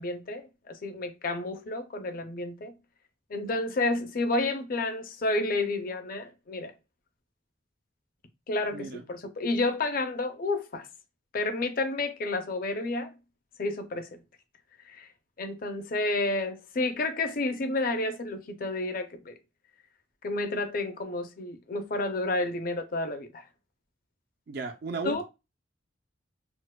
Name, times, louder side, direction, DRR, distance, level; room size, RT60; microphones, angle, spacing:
voice 1, 0.0-2.7 3.3-6.7 8.5-10.9 11.3-13.1 13.6-14.2 14.9-15.1 15.4-19.3 20.2-23.4 25.0-25.2, left 2 dB, 50° left, 0.5 m, -30 dB
voice 2, 8.7-9.0 24.5-25.2, right 3 dB, 55° right, 0.4 m, -35 dB
4.4 x 2.1 x 2.2 m
head